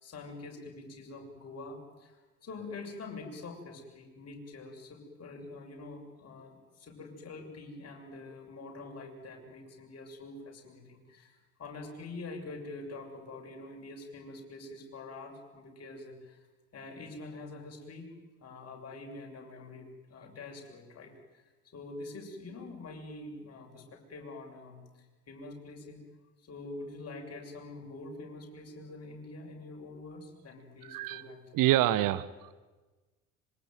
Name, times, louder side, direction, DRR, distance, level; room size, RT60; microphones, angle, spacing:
voice 1, 0.0-16.4 16.7-21.4 21.7-24.8 25.3-26.0 26.4-31.4, left 2 dB, 35° left, 2 dB, 6.9 m, -45 dB
voice 2, 30.8-31.2 31.5-32.5, right 14 dB, 50° right, 15 dB, 1.1 m, -27 dB
25.5 x 23.5 x 9.4 m, 1.2 s
figure-of-eight pair, 65°, 43 cm